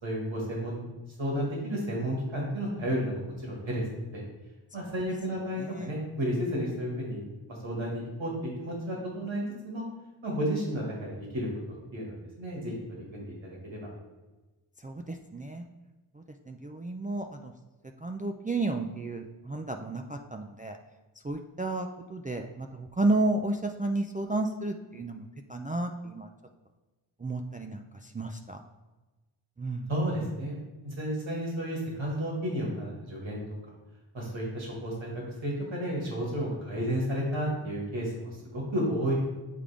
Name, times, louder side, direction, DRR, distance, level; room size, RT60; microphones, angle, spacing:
voice 1, 0.0-0.9 1.2-4.2 4.7-7.2 7.5-9.8 10.2-11.5 11.9-13.3 13.7-13.8 29.9-33.4 34.1-35.1 35.4-39.1, equal, 65° right, -3 dB, 2.0 m, -32 dB
voice 2, 14.8-15.6 16.5-17.5 18.0-20.8 21.2-26.3 27.2-27.8 28.1-28.6 29.6-29.9, right 2 dB, 20° right, 4 dB, 0.4 m, -32 dB
8.4 x 3.6 x 3.5 m, 1.2 s
cardioid pair, 45°, 50 cm